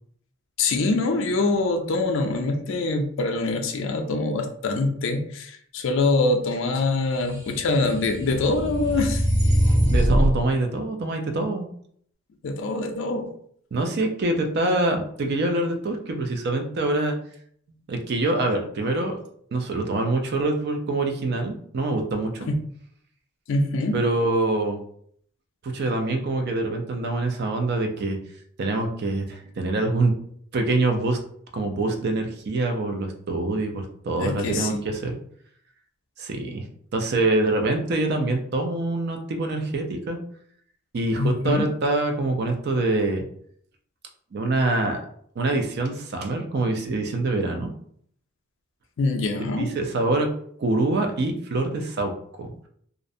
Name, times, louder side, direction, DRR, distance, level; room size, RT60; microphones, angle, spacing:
voice 1, 0.6-9.2 12.4-13.3 23.5-24.0 34.2-34.8 41.2-41.6 49.0-49.7, left 3 dB, 60° left, 5 dB, 0.4 m, -24 dB
sound 1, 7.4-10.3, equal, 85° right, 1.1 m, -22 dB
voice 2, 9.9-11.7 13.7-17.2 17.9-19.2 19.5-22.5 23.9-24.8 25.6-28.2 28.6-30.1 30.5-31.2 31.5-35.2 36.2-36.6 36.9-40.2 40.9-43.2 44.3-45.0 45.4-47.7 49.6-50.3 50.6-52.1 52.4-52.5, right 2 dB, 50° right, 4 dB, 0.4 m, -25 dB
2.5 x 2.0 x 2.5 m, 0.63 s
head